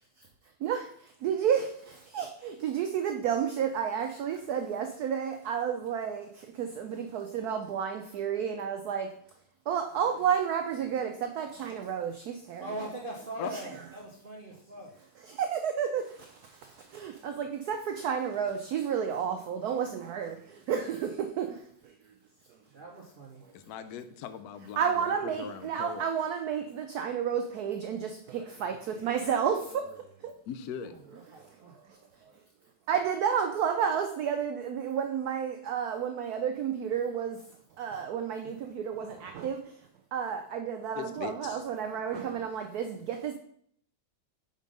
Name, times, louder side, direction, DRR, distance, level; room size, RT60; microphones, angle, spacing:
voice 1, 0.6-9.1 9.7-12.7 13.5-13.6 15.3-21.9 24.8-30.3 31.4-32.0 32.9-37.4 37.8-39.7 40.1-43.3, right 8 dB, 90° right, 6 dB, 0.8 m, -31 dB
voice 2, 12.6-14.9 22.6-23.4 30.8-31.8, right 1 dB, 65° right, -1 dB, 0.5 m, -42 dB
voice 3, 23.5-26.1 30.5-30.9 38.4-38.5 40.9-41.6, left 8 dB, 80° left, 10 dB, 0.8 m, -40 dB
5.3 x 4.5 x 5.2 m, 0.65 s
omnidirectional pair, 2.2 m